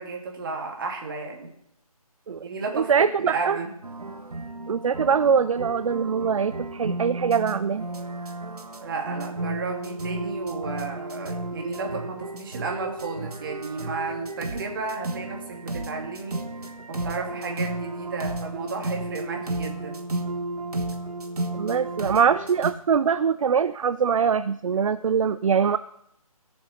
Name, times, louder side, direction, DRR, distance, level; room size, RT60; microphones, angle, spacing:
voice 1, 0.0-1.5 2.4-3.7 8.8-16.4 16.9-20.0, right 4 dB, 35° right, 1 dB, 2.2 m, -33 dB
voice 2, 2.7-3.6 4.7-7.9 21.5-25.8, right 6 dB, 60° right, 13 dB, 0.4 m, -23 dB
sound 1, 3.8-22.7, right 2 dB, 85° right, 1.3 m, -33 dB
18.5 x 6.8 x 4.1 m, 0.77 s
figure-of-eight pair, 155°, 19 cm